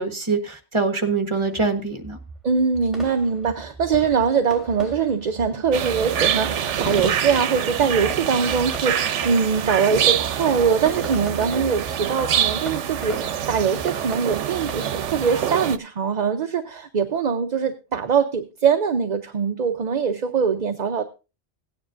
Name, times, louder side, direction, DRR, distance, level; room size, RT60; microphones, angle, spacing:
voice 1, 0.0-2.2, right 4 dB, 25° right, 6 dB, 1.3 m, -24 dB
sound 1, 1.3-14.7, right 1 dB, ahead, 2.7 m, -39 dB
voice 2, 2.4-21.0, right 6 dB, 45° right, 6 dB, 0.7 m, -22 dB
sound 2, 5.7-15.8, right 9 dB, 80° right, 1.0 m, -25 dB
17.0 x 9.6 x 2.5 m, 0.30 s
omnidirectional pair, 1.2 m